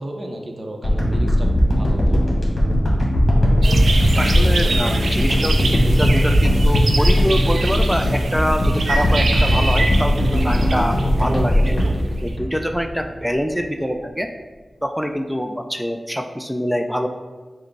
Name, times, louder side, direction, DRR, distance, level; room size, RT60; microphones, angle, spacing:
voice 1, 0.0-2.3, right 1 dB, 45° right, 2 dB, 0.6 m, -33 dB
sound 1, 0.8-13.1 13.6-13.7, equal, 50° left, 1.2 m, -18 dB
sound 2, 3.6-12.3, right 3 dB, 90° right, 0.3 m, -26 dB
voice 2, 4.2-11.9 12.2-14.3 14.8-17.1, equal, ahead, 5 dB, 0.3 m, -25 dB
4.8 x 2.1 x 4.5 m, 1.3 s
cardioid pair, 50°, 0 cm